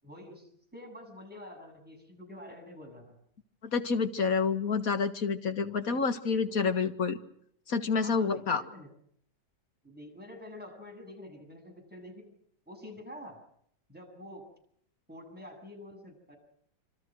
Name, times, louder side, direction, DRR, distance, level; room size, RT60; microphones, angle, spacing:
voice 1, 0.0-3.2 5.9-6.1 6.5-6.7 8.0-8.9 9.8-12.3 12.7-13.4 13.9-14.5 15.1-16.4, left 1 dB, 5° right, 1 dB, 7.7 m, -47 dB
voice 2, 3.7-7.2 7.7-8.6, left 5 dB, 45° left, 8 dB, 2.0 m, -28 dB
27.0 x 25.5 x 6.3 m, 0.67 s
omnidirectional pair, 2.2 m